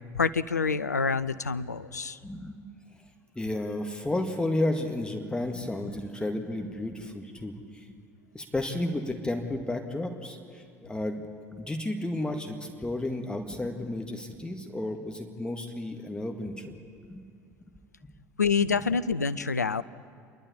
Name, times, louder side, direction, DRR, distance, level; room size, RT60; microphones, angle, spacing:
voice 1, 0.1-2.2 18.4-19.8, left 5 dB, 90° left, 14 dB, 0.5 m, -27 dB
voice 2, 2.2-2.6 3.4-7.9 8.3-11.2 11.5-16.7 17.0-17.2 18.0-18.1 18.6-18.9, left 1 dB, 10° left, 4 dB, 1.9 m, -32 dB
28.0 x 12.0 x 8.7 m, 2.3 s
figure-of-eight pair, 65°, 9 cm